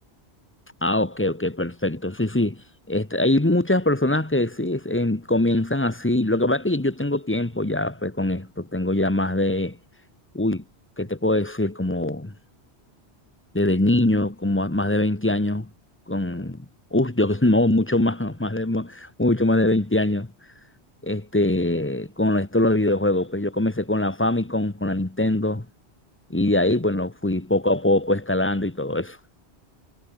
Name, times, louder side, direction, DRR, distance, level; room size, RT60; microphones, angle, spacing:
voice 1, 0.8-2.6 2.9-9.8 10.3-10.6 11.0-12.3 13.5-15.7 16.1-16.6 16.9-20.3 21.0-25.7 26.3-29.2, left 1 dB, 10° left, 1.2 m, -23 dB
omnidirectional pair, 1.1 m